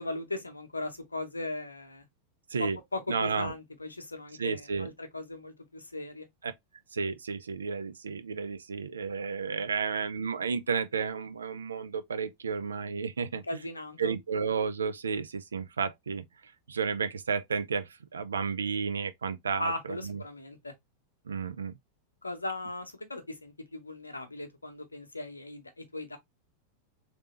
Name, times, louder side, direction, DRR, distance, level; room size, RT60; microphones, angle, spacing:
voice 1, 0.0-2.0 2.9-6.3 13.3-14.1 19.6-20.7 22.2-26.2, left 2 dB, 80° left, 0.7 m, -38 dB
voice 2, 3.1-3.5 4.4-4.9 6.4-6.5 6.9-13.4 14.0-20.2 21.3-21.8, right 5 dB, 70° right, 0.4 m, -32 dB
3.3 x 2.7 x 2.9 m
figure-of-eight pair, 90°, 0 cm